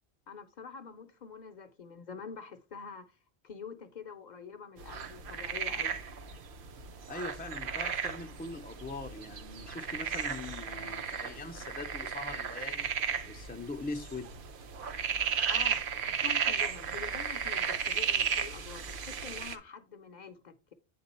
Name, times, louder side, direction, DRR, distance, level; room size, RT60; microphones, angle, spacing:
voice 1, 0.3-3.1 3.4-6.0 15.5-20.7, left 6 dB, 50° left, 0.6 m, -46 dB
sound 1, 4.8-19.6, right 7 dB, 60° right, 0.8 m, -34 dB
voice 2, 7.1-12.9 13.3-14.3, left 3 dB, 15° left, 0.3 m, -42 dB
8.6 x 3.6 x 4.1 m
omnidirectional pair, 1.1 m